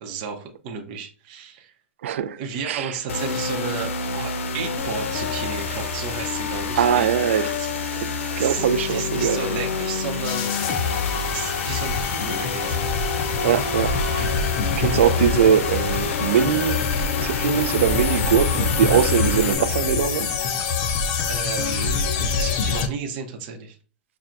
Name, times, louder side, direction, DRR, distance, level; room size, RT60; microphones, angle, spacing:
voice 1, 0.0-1.7 2.4-7.7 8.4-10.5 11.3-13.0 21.3-23.8, right 6 dB, 40° right, 0.7 m, -33 dB
voice 2, 2.0-2.4 2.6-3.0 6.8-7.5 8.0-9.4 13.4-14.3 14.8-16.9 17.2-20.3, right 9 dB, 75° right, 0.4 m, -22 dB
sound 1, 3.1-19.5, left 4 dB, 90° left, 0.6 m, -28 dB
sound 2, 4.7-12.6, left 2 dB, 15° left, 0.8 m, -45 dB
sound 3, 10.2-22.9, left 5 dB, 40° left, 0.5 m, -25 dB
5.7 x 2.2 x 2.5 m
hypercardioid pair, 155°, 7 cm